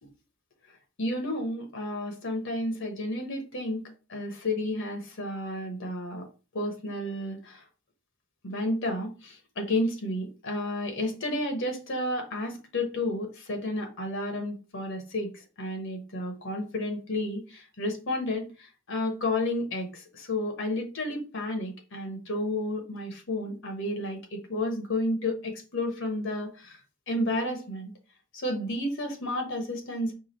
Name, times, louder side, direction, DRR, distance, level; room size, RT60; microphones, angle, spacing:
voice 1, 1.0-3.8 4.1-6.3 6.5-7.6 8.4-15.3 15.6-18.5 18.9-26.8 27.1-27.9 28.3-30.1, left 1 dB, 65° left, 1.1 m, -31 dB
4.8 x 2.4 x 4.3 m
head